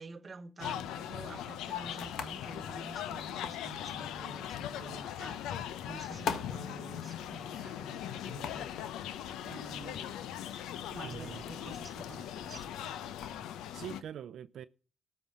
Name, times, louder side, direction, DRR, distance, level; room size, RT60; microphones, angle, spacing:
voice 1, 0.0-8.9 9.4-10.1 10.9-12.7, right 4 dB, 35° right, 0.9 m, -49 dB
sound 1, 0.6-14.0, left 10 dB, 85° left, 0.7 m, -40 dB
sound 2, 2.0-13.4, left 6 dB, 70° left, 1.3 m, -46 dB
voice 2, 11.0-11.4 13.7-14.7, right 9 dB, 65° right, 0.4 m, -43 dB
13.0 x 5.4 x 7.4 m
cardioid pair, 90°, 0 cm